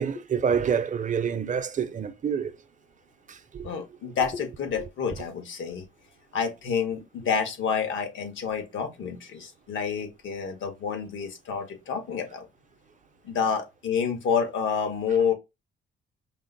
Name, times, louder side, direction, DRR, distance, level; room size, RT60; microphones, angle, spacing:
voice 1, 0.0-2.6 3.3-3.7, right 7 dB, 40° right, 0.6 m, -27 dB
voice 2, 3.6-5.8 6.3-12.5 13.2-15.3, left 6 dB, 75° left, 1.5 m, -28 dB
5.2 x 2.0 x 4.0 m
cardioid pair, 90°, 20 cm